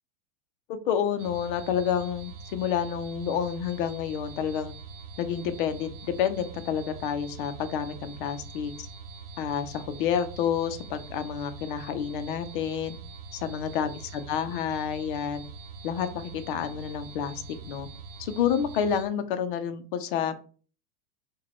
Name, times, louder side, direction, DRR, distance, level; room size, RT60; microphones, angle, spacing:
voice 1, 0.7-4.7 5.2-8.9 9.4-13.0 13.3-15.4 15.8-17.9 18.2-20.3, left 8 dB, 40° left, 10 dB, 0.4 m, -29 dB
sound 1, 1.2-19.1, right 4 dB, 45° right, 0.9 m, -43 dB
5.0 x 2.2 x 4.1 m, 0.41 s
supercardioid pair, 175°, 41 cm